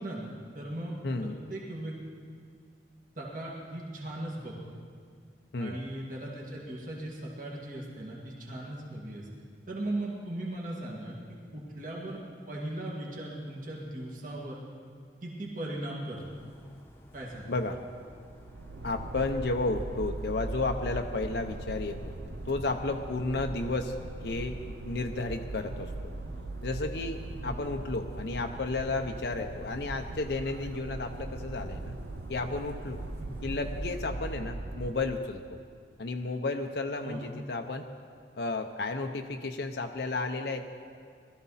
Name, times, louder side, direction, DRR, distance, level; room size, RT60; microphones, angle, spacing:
voice 1, 0.0-1.9 3.2-4.6 5.6-9.3 9.7-14.6 15.2-16.2 17.1-17.5 27.3-27.6 33.2-33.3 37.0-37.2, right 1 dB, 50° right, -3 dB, 2.1 m, -38 dB
voice 2, 1.0-1.4 5.5-5.8 17.5-17.8 18.8-22.1 22.5-24.6 24.8-25.9 26.6-31.9 32.3-33.0 33.4-35.4 36.0-37.9 38.4-40.6, left 3 dB, 65° left, 4 dB, 0.7 m, -32 dB
sound 1, 16.1-34.0, equal, 15° left, 1.0 m, -52 dB
sound 2, 18.1-35.2, right 2 dB, 80° right, 0.6 m, -40 dB
20.0 x 13.5 x 4.1 m, 2.1 s
head